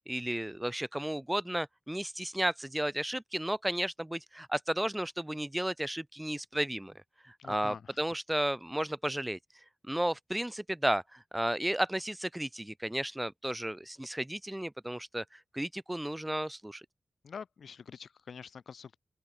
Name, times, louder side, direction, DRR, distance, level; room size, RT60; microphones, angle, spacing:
voice 1, 0.1-6.9 7.2-9.4 9.9-16.8, right 1 dB, 10° right, 0.8 m, -33 dB
voice 2, 7.4-8.0 17.2-19.0, left 6 dB, 75° left, 2.6 m, -46 dB
wide cardioid pair, 130°, 0 cm